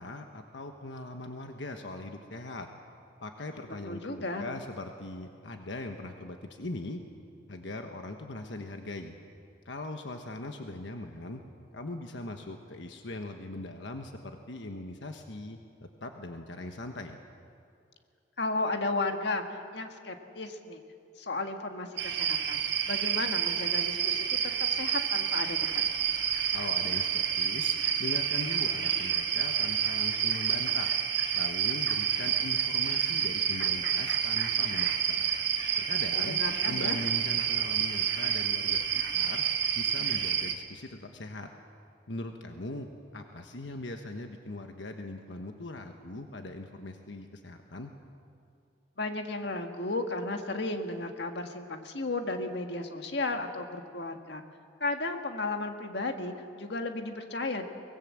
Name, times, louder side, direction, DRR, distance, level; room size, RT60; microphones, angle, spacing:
voice 1, 0.0-2.7 3.2-7.0 7.5-9.1 9.6-11.4 11.7-15.6 16.0-17.2 26.5-30.9 31.3-36.4 36.7-39.4 39.7-41.5 42.1-47.9, left 2 dB, 90° left, 5 dB, 1.3 m, -40 dB
voice 2, 3.8-4.5 18.4-20.8 21.2-24.4 24.7-25.8 36.2-37.0 49.0-54.4 54.8-57.7, left 2 dB, 70° left, 5 dB, 1.6 m, -34 dB
sound 1, 22.0-40.5, right 8 dB, 75° right, 1.6 m, -29 dB
23.5 x 19.5 x 7.6 m, 2.4 s
head